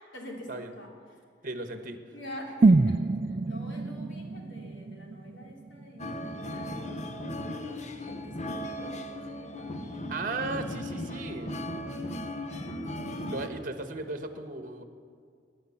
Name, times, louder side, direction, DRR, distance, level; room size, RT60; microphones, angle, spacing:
voice 1, 0.1-0.5 0.7-0.9 2.1-7.1 7.9-10.1 11.9-13.3, equal, 90° left, 0 dB, 3.1 m, -46 dB
voice 2, 1.4-2.0 10.1-11.5 13.3-14.8, right 3 dB, 45° right, 7 dB, 1.3 m, -36 dB
sound 1, 2.6-6.6 6.9-7.0, right 3 dB, 30° right, 0.3 m, -26 dB
sound 2, 6.0-13.5, left 1 dB, 40° left, 1.0 m, -37 dB
19.0 x 10.5 x 7.1 m, 2.2 s
head